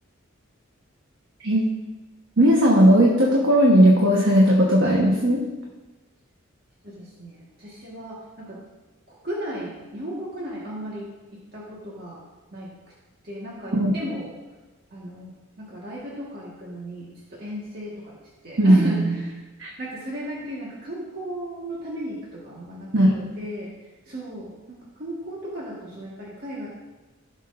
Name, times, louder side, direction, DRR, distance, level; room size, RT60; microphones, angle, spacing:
voice 1, 2.4-5.4 13.7-13.9 18.6-19.2 19.6-19.7 22.9-23.3, right 1 dB, 65° right, -3 dB, 1.3 m, -17 dB
voice 2, 6.8-8.6 9.1-12.2 12.5-12.7 13.2-14.3 14.9-18.2 18.4-19.4 19.8-22.9 23.4-23.7 24.1-26.7, equal, 50° right, -5 dB, 1.7 m, -35 dB
16.0 x 6.3 x 2.7 m, 1.2 s
head